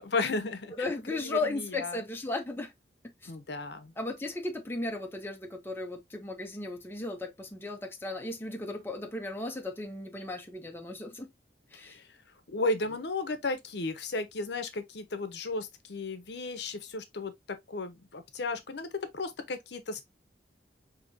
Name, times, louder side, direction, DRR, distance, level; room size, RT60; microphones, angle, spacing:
voice 1, 0.0-2.0 3.2-3.9 11.8-12.1 12.5-18.9 19.1-20.0, left 3 dB, 65° left, 0.7 m, -34 dB
voice 2, 0.8-2.7 3.2-3.3 4.0-11.3 11.7-12.0, left 2 dB, 15° left, 0.6 m, -36 dB
5.2 x 2.8 x 2.6 m
head